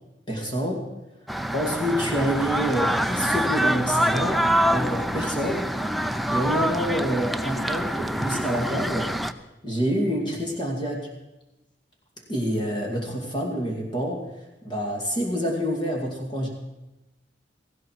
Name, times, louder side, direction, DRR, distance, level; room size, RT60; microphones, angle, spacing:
voice 1, 0.3-0.9 1.5-4.4 4.7-5.7 6.3-9.1 9.6-11.1 12.3-14.2 14.6-16.5, equal, 25° left, -1 dB, 2.4 m, -27 dB
sound 1, 1.3-9.3, equal, ahead, 0.4 m, -25 dB
17.5 x 15.5 x 4.7 m, 0.97 s
head